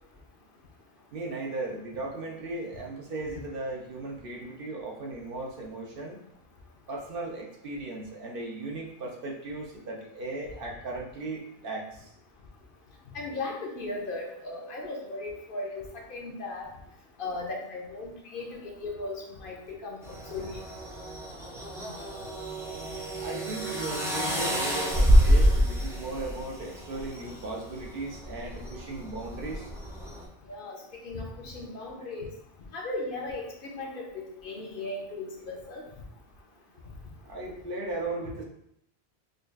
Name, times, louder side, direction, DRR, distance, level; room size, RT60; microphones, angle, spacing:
voice 1, 1.1-6.2 6.9-12.0 23.2-29.7 37.3-38.4, right 2 dB, 65° right, -1 dB, 0.8 m, -37 dB
voice 2, 13.1-16.7 17.2-20.0 20.3-20.5 24.9-25.0 30.5-30.8 31.0-32.3 32.7-35.8, left 2 dB, 60° left, -1 dB, 0.8 m, -37 dB
sound 1, 20.0-30.2, equal, 5° right, 0.3 m, -28 dB
5.0 x 2.3 x 2.4 m, 0.76 s
omnidirectional pair, 1.1 m